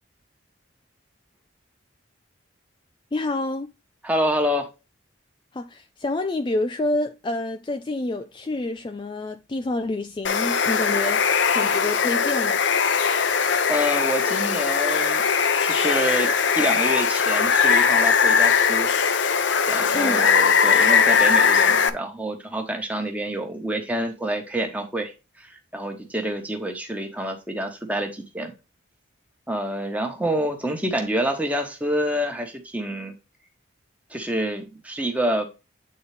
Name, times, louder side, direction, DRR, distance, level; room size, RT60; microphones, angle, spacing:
voice 1, 3.1-3.7 5.5-11.2 11.5-12.6 19.9-20.3, left 2 dB, 25° left, 0.4 m, -28 dB
voice 2, 4.0-4.7 13.7-15.2 15.6-18.9 19.7-28.5 29.5-33.1 34.1-35.5, equal, 5° right, 1.2 m, -27 dB
Water, 10.2-21.9, left 6 dB, 65° left, 0.7 m, -20 dB
8.7 x 4.0 x 3.3 m
head